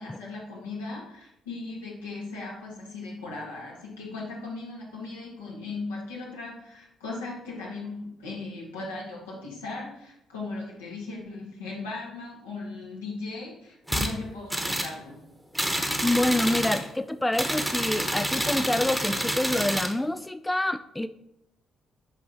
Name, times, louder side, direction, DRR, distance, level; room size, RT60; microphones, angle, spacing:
voice 1, 0.0-15.2, left 3 dB, 80° left, -4 dB, 1.7 m, -38 dB
sound 1, 13.9-14.1 14.5-14.9 15.5-16.9 17.3-19.9, equal, 5° right, 1.1 m, -28 dB
voice 2, 16.0-21.1, left 1 dB, 10° left, 11 dB, 0.3 m, -27 dB
8.4 x 5.3 x 2.9 m, 0.82 s
figure-of-eight pair, 45°, 0 cm